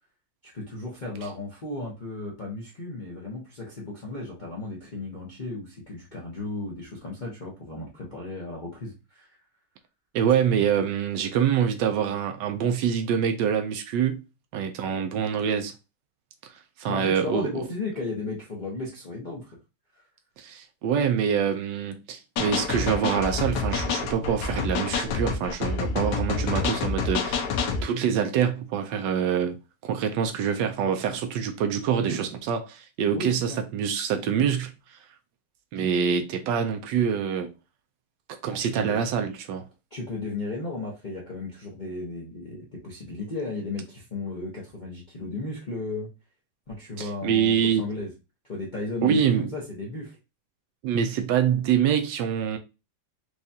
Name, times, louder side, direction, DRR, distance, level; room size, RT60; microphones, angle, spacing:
voice 1, 0.4-9.4 16.9-19.6 33.1-33.6 38.5-39.0 39.9-46.1 46.7-48.1 48.5-50.2, left 2 dB, 60° left, 0.4 m, -35 dB
voice 2, 10.1-14.2 14.5-15.7 16.4-17.6 20.4-27.4 27.8-29.6 29.8-35.0 35.7-37.5 38.4-39.6 47.0-47.9 49.0-49.5 50.8-52.6, right 8 dB, 80° right, 1.0 m, -25 dB
sound 1, 22.4-27.8, left 4 dB, 85° left, 1.6 m, -27 dB
4.8 x 2.3 x 2.7 m
omnidirectional pair, 2.4 m